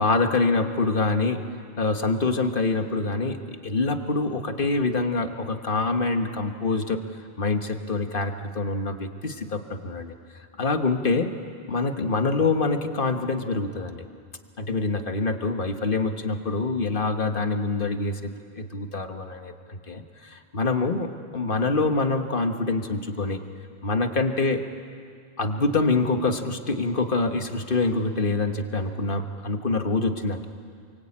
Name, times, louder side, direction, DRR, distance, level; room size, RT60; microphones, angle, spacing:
voice 1, 0.0-1.4 1.8-7.0 7.4-10.1 10.6-11.3 11.7-14.0 14.6-21.1 21.3-23.4 23.8-24.6 25.4-30.5, left 3 dB, 55° left, 6 dB, 1.7 m, -25 dB
27.5 x 24.5 x 8.8 m, 2.2 s
omnidirectional pair, 1.1 m